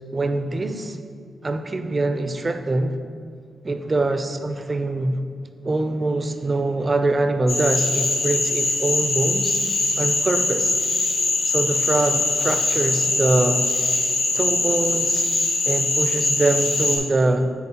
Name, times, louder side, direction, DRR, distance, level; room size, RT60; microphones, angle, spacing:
voice 1, 0.1-1.0 1.4-3.0 3.6-5.2 5.6-9.6 10.0-10.8 11.4-13.7 14.3-15.3 15.6-17.5, right 2 dB, 25° right, 8 dB, 0.4 m, -23 dB
Cricket / Frog, 7.5-17.0, left 2 dB, 85° left, 1.7 m, -22 dB
9.6 x 4.6 x 2.9 m, 2.1 s
wide cardioid pair, 140°, 0 cm